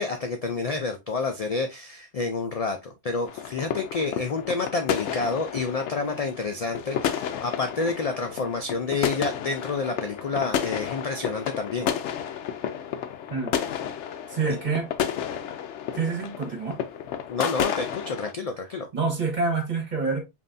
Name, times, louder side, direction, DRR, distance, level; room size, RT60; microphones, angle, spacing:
voice 1, 0.0-11.9 14.5-14.6 17.3-18.9, left 4 dB, 55° left, 0.4 m, -29 dB
sound 1, 3.3-18.3, left 9 dB, 85° left, 0.9 m, -31 dB
voice 2, 14.3-14.9 15.9-16.8 18.6-20.2, right 4 dB, 40° right, 1.6 m, -27 dB
5.3 x 2.7 x 2.5 m
omnidirectional pair, 1.2 m